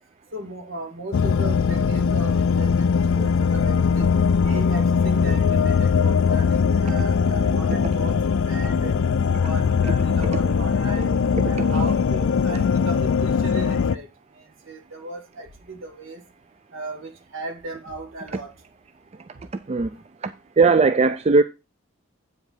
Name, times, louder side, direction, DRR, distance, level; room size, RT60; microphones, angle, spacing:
voice 1, 0.3-4.1 4.4-8.2 8.4-9.0 9.3-11.1 11.4-14.1 14.4-16.2 16.7-18.5, right 2 dB, 65° right, 2.0 m, -36 dB
sound 1, 1.1-14.0, left 6 dB, 70° left, 0.4 m, -20 dB
voice 2, 3.5-4.1 6.9-7.0 10.2-10.5 11.0-11.9 12.5-12.6 19.1-19.3 19.7-21.4, right 4 dB, 30° right, 0.3 m, -22 dB
8.3 x 5.1 x 5.5 m
head